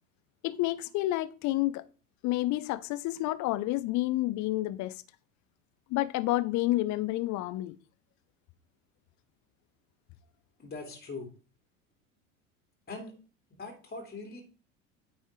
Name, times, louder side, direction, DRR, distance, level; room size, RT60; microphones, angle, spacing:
voice 1, 0.4-1.8 2.2-5.0 5.9-7.7, left 17 dB, 45° left, 0.8 m, -29 dB
voice 2, 10.6-11.3 12.9-13.1 13.5-14.4, left 3 dB, 25° left, 2.7 m, -41 dB
9.3 x 4.3 x 4.7 m
hypercardioid pair, 80°, 39 cm